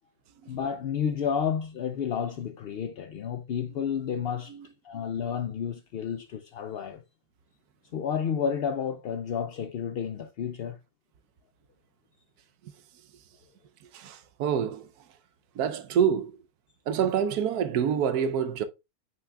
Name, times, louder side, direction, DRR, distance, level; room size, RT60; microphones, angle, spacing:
voice 1, 0.5-4.6 4.8-7.0 7.9-10.8, left 7 dB, 70° left, 0.5 m, -31 dB
voice 2, 13.9-14.9 15.5-16.3 16.9-18.6, right 8 dB, 85° right, 1.2 m, -27 dB
9.2 x 5.8 x 2.3 m
omnidirectional pair, 1.6 m